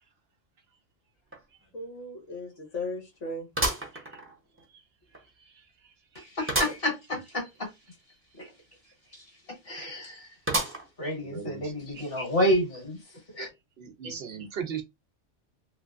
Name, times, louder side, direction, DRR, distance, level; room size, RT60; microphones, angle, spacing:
sound 1, 1.3-1.4 1.8-1.9 3.5-4.6 5.1-5.2 6.5-6.9 7.3-7.4 7.6-7.7 10.5-11.1 11.7-11.8 12.7-12.8, right 2 dB, 15° right, 0.7 m, -30 dB
voice 1, 1.7-3.5 14.0-14.5, left 2 dB, 80° left, 1.6 m, -37 dB
voice 2, 6.3-7.7 8.4-8.5 9.1-9.2 9.7-10.3 11.0-13.0 13.3-13.5, equal, 50° left, 1.8 m, -29 dB
voice 3, 11.2-11.7 13.8-14.8, right 7 dB, 65° right, 0.8 m, -36 dB
3.2 x 3.1 x 2.4 m
omnidirectional pair, 1.2 m